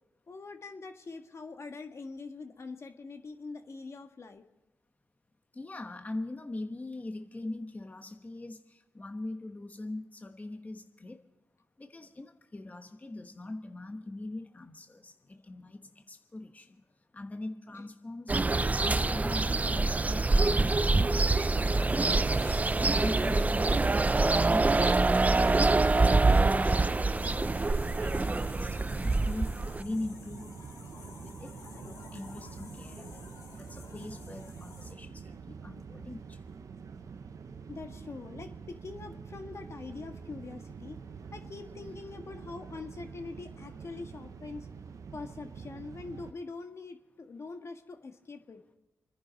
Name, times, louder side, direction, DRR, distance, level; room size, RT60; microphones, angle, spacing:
voice 1, 0.3-4.4 17.7-17.8 37.7-41.0 41.3-44.7 45.1-48.6, left 3 dB, 50° left, 6 dB, 1.6 m, -43 dB
voice 2, 5.5-11.2 11.8-16.7 17.1-18.4 18.8-25.8 26.2-27.6 28.0-29.5 29.8-30.5 30.8-31.5 31.8-33.3 33.6-36.4, left 2 dB, 25° left, 5 dB, 1.2 m, -42 dB
sound 1, 18.3-29.8, right 3 dB, 25° right, 0.5 m, -25 dB
sound 2, 21.2-34.9, left 4 dB, 75° left, 2.2 m, -52 dB
sound 3, 27.5-46.3, right 6 dB, 65° right, 0.9 m, -46 dB
27.0 x 10.5 x 4.1 m, 1.0 s
supercardioid pair, 50°, 6 cm